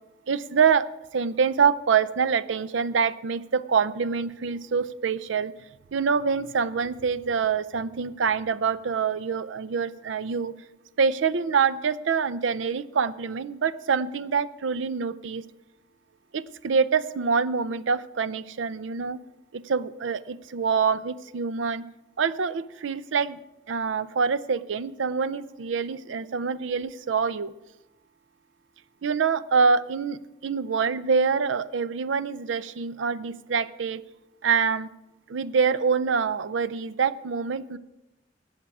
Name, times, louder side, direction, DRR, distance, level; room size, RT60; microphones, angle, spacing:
voice 1, 0.3-5.5 5.9-10.5 11.0-15.4 16.3-19.2 19.5-21.8 22.2-23.4 23.7-27.5 29.0-34.0 34.4-34.9 35.3-37.8, right 5 dB, 90° right, 16 dB, 0.5 m, -25 dB
19.0 x 7.4 x 4.8 m, 0.94 s
head